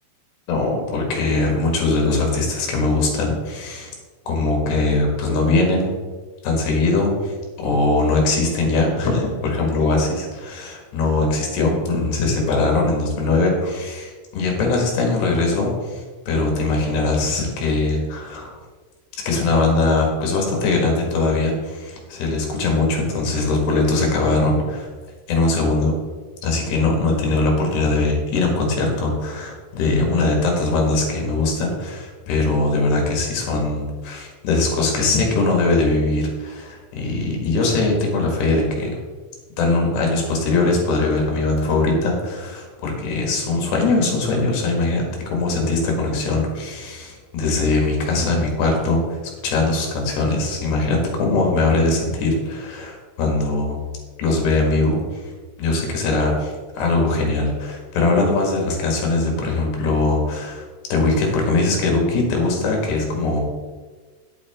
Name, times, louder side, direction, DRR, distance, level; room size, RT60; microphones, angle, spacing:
voice 1, 0.5-3.9 4.3-5.9 6.4-18.5 19.3-24.9 25.3-26.0 26.4-38.9 39.6-49.0 49.4-53.9 54.2-55.0 55.6-60.6 60.9-63.4, left 3 dB, 75° left, 1 dB, 3.8 m, -21 dB
9.5 x 8.6 x 3.6 m, 1.4 s
omnidirectional pair, 4.9 m